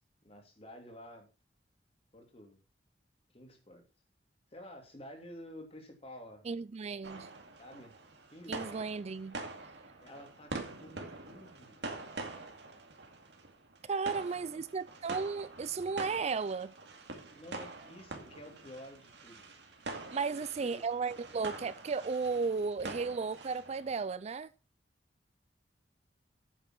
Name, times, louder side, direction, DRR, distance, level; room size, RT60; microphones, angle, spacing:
voice 1, 0.2-1.3 2.1-2.6 3.3-3.8 4.5-6.5 7.6-7.9 8.3-8.9 10.0-11.8 14.1-14.6 17.3-19.5 20.3-20.8, left 1 dB, 35° left, 2.9 m, -51 dB
voice 2, 6.5-7.3 8.5-9.4 13.9-16.7 20.1-24.5, right 4 dB, 40° right, 0.4 m, -34 dB
sound 1, 7.0-24.1, right 3 dB, 70° right, 2.3 m, -45 dB
9.1 x 7.1 x 5.9 m
head